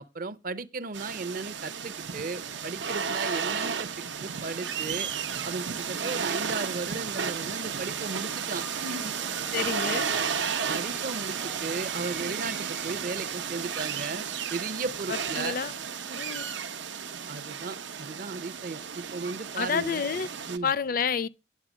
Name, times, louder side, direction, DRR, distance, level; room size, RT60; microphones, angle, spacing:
voice 1, 0.0-3.9 4.2-5.1 5.4-9.1 10.7-14.2 14.5-15.6 16.1-16.2 17.3-20.0 20.5-20.7, right 3 dB, 50° right, 0.6 m, -36 dB
sound 1, 0.9-20.6, right 6 dB, 90° right, 0.8 m, -33 dB
sound 2, 5.8-15.8, right 2 dB, 5° right, 0.4 m, -50 dB
voice 2, 9.5-10.1 15.1-15.7 16.1-16.5 19.6-20.3 20.6-21.3, left 6 dB, 50° left, 0.5 m, -29 dB
9.3 x 8.1 x 6.1 m
head